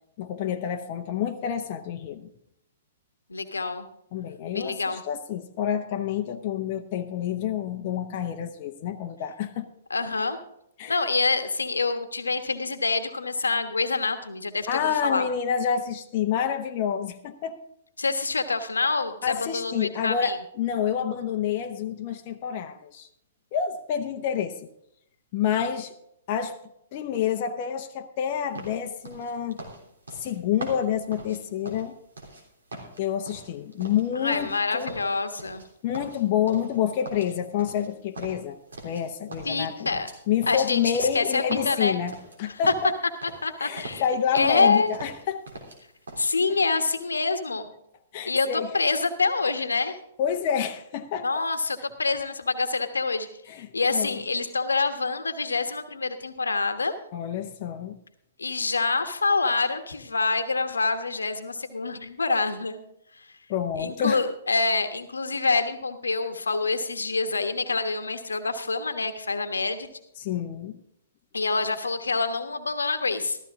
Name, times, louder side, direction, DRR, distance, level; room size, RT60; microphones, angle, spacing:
voice 1, 0.2-2.3 4.1-9.7 10.8-11.0 14.7-17.6 19.2-23.1 23.5-24.7 25.3-25.9 26.3-26.6 26.9-29.6 30.2-31.9 33.0-34.9 35.8-38.6 38.8-40.0 40.3-42.9 43.6-45.4 46.5-46.6 48.1-48.7 50.2-51.4 53.5-54.2 57.1-58.0 63.5-64.2 70.2-70.8, left 8 dB, 45° left, 5 dB, 0.8 m, -28 dB
voice 2, 3.3-3.9 4.5-5.0 9.9-10.4 10.9-15.2 18.0-20.4 34.1-35.6 39.4-40.1 40.5-42.0 43.4-44.0 44.3-44.9 46.2-47.7 48.3-50.0 51.2-53.3 53.7-57.0 58.4-62.8 63.8-69.9 71.3-73.4, left 3 dB, 80° left, 9 dB, 1.2 m, -26 dB
sound 1, 28.5-32.4 32.7-34.6 34.9-35.7 35.9-36.8 37.0-39.0 39.3-42.9 43.2-43.5 43.7-44.6 44.9-45.8 46.1-46.3, right 2 dB, 75° right, 3.3 m, -41 dB
14.0 x 14.0 x 3.7 m, 0.77 s
figure-of-eight pair, 115°, 0 cm